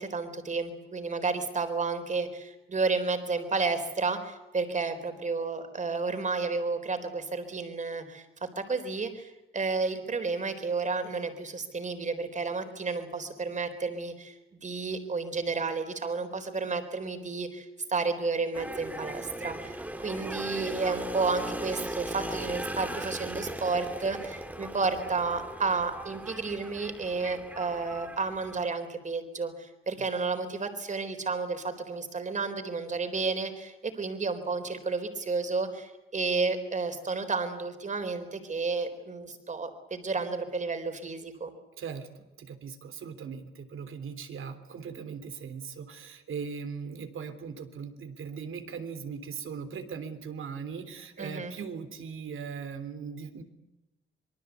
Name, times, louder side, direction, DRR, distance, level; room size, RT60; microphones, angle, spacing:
voice 1, 0.0-41.5 51.2-51.5, right 4 dB, 35° right, 8 dB, 4.1 m, -31 dB
sound 1, 18.5-28.7, right 1 dB, 5° right, 2.0 m, -38 dB
voice 2, 41.8-53.4, right 6 dB, 80° right, 9 dB, 3.4 m, -39 dB
26.5 x 23.5 x 8.3 m, 0.96 s
wide cardioid pair, 150°, 21 cm